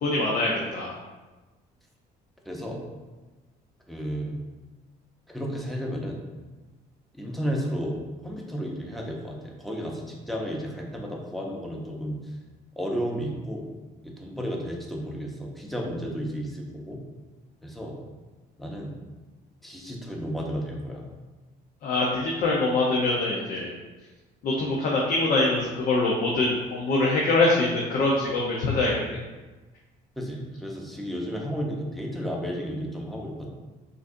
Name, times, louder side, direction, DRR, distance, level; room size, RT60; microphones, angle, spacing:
voice 1, 0.0-1.0 21.8-23.7 24.4-29.2, left 2 dB, 60° left, -3 dB, 0.7 m, -24 dB
voice 2, 2.5-2.8 3.9-4.4 5.3-6.2 7.1-8.0 8.2-12.2 12.8-13.7 14.0-17.0 17.6-17.9 18.6-18.9 19.6-21.0 30.2-33.5, equal, ahead, -1 dB, 0.8 m, -32 dB
6.1 x 2.6 x 2.5 m, 1.2 s
cardioid pair, 110°, 17 cm